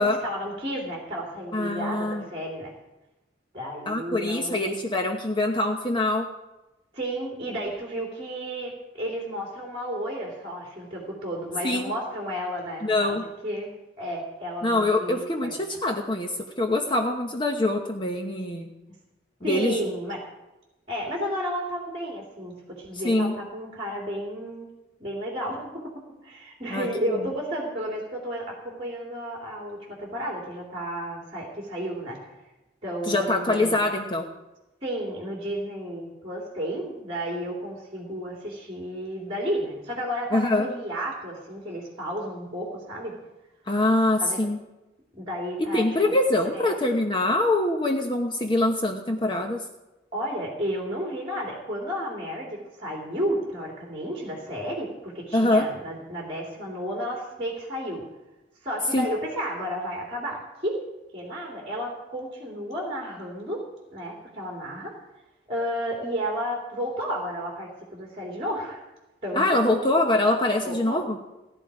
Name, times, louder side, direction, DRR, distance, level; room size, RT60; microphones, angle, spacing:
voice 1, 0.0-2.7 3.5-4.8 6.9-15.5 18.9-19.0 19.4-20.2 20.9-24.7 25.0-25.9 26.2-32.3 32.8-33.8 34.8-43.1 44.2-44.4 45.1-46.1 46.5-46.7 50.1-58.0 58.6-60.8 61.1-63.6 63.9-64.9 65.5-68.8 69.2-69.4 69.7-69.9 70.6-71.0, equal, 30° right, -2 dB, 2.9 m, -32 dB
voice 2, 1.5-2.2 3.9-6.3 11.6-11.9 12.8-13.3 14.6-18.7 19.4-19.8 23.0-23.4 26.7-27.2 33.1-34.3 40.3-40.7 43.7-44.6 45.7-49.7 55.3-55.7 58.9-59.1 69.3-71.2, left 2 dB, 25° left, 2 dB, 1.0 m, -24 dB
18.0 x 12.0 x 4.9 m, 1.0 s
head